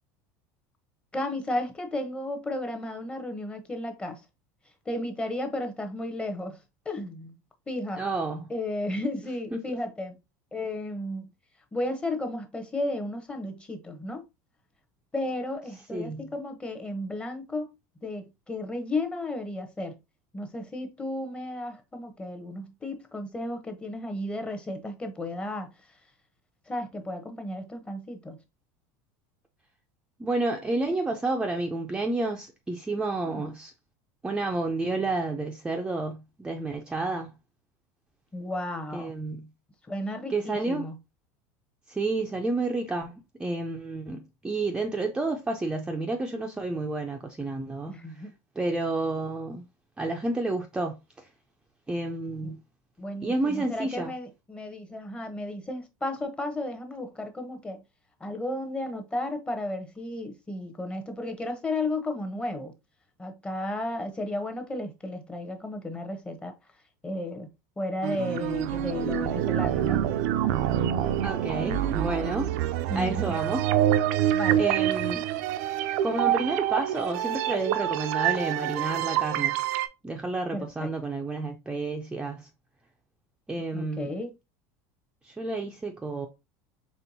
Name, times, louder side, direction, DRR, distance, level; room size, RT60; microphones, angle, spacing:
voice 1, 1.1-4.2 4.9-6.6 6.9-7.3 7.7-8.0 8.5-10.1 10.5-11.3 11.7-14.2 15.1-17.7 18.0-20.0 20.3-25.7 26.7-28.4 33.2-33.5 38.3-39.1 39.9-41.0 47.9-48.3 52.4-52.6 53.0-57.8 58.2-62.7 63.2-66.6 67.0-67.5 67.8-70.1 72.9-73.4 74.3-74.6 80.5-80.9 83.7-84.3, left 1 dB, 10° left, 0.8 m, -33 dB
voice 2, 8.0-8.5 9.5-9.6 15.9-16.3 30.2-33.7 34.2-37.3 38.9-39.5 40.3-40.9 41.9-48.3 48.6-49.6 50.0-51.3 51.9-52.6 53.2-54.1 71.2-72.5 72.9-73.6 74.6-75.3 76.0-79.6 80.0-82.5 83.5-84.1 85.2-86.3, right 2 dB, 10° right, 0.4 m, -30 dB
sound 1, 68.0-79.9, right 12 dB, 75° right, 0.4 m, -26 dB
4.4 x 3.4 x 2.6 m
supercardioid pair, 135°, 9 cm